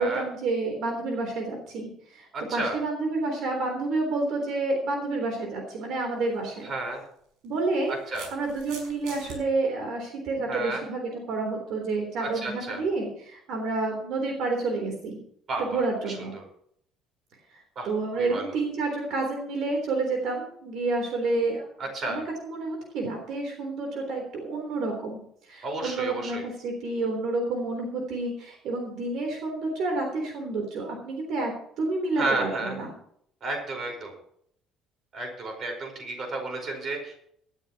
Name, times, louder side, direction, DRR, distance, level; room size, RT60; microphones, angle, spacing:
voice 1, 0.0-6.7 7.4-7.9 8.3-15.2 15.6-16.3 17.8-21.7 22.0-31.5 31.8-32.9, right 3 dB, 55° right, 2 dB, 3.6 m, -29 dB
voice 2, 2.3-2.8 6.6-7.0 8.1-8.3 10.5-10.8 12.2-12.8 15.5-15.8 16.1-16.4 17.7-17.9 18.1-18.5 21.8-22.2 25.6-26.4 32.2-32.8 33.4-34.1 35.1-37.2, right 2 dB, 35° right, 3 dB, 4.8 m, -32 dB
sound 1, 6.2-6.4 7.4-9.4, right 4 dB, 90° right, 5.7 m, -43 dB
18.5 x 12.5 x 3.0 m, 0.67 s
cardioid pair, 170°, 0 cm